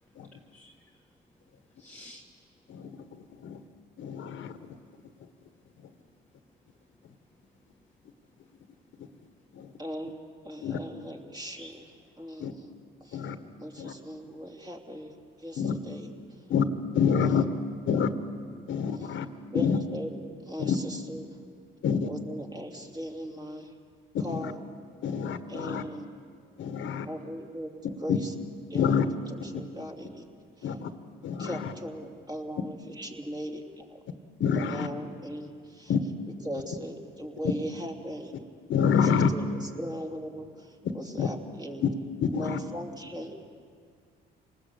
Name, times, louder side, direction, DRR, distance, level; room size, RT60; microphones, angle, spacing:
voice 1, 0.0-1.0 1.6-2.3 6.9-7.5 11.5-11.7, left 1 dB, 10° left, 0 dB, 1.6 m, -53 dB
voice 2, 2.7-3.6 4.0-4.8 9.5-9.7 10.6-10.8 12.4-12.5 13.1-13.4 13.8-13.9 15.6-15.7 16.5-16.6 16.9-17.4 17.9-18.1 18.7-19.3 19.5-19.8 20.6-20.8 21.8-22.1 24.3-24.5 25.0-25.8 26.6-27.0 28.1-28.2 28.7-29.0 30.6-30.9 31.2-31.7 34.4-34.9 35.9-36.0 38.7-39.3 41.2-41.3 42.2-42.6, left 7 dB, 75° left, 9 dB, 1.5 m, -27 dB
voice 3, 9.8-11.8 12.2-12.7 13.0-16.5 17.1-17.5 19.0-19.2 19.5-21.4 22.1-23.7 24.2-24.6 25.5-26.1 27.1-27.7 28.0-28.3 28.7-29.0 29.3-30.2 30.6-30.8 31.4-33.6 34.5-35.9 36.4-38.3 39.0-41.8 42.3-43.3, equal, 20° right, 1 dB, 3.0 m, -39 dB
27.5 x 19.5 x 8.5 m, 2.1 s
cardioid pair, 90°, 20 cm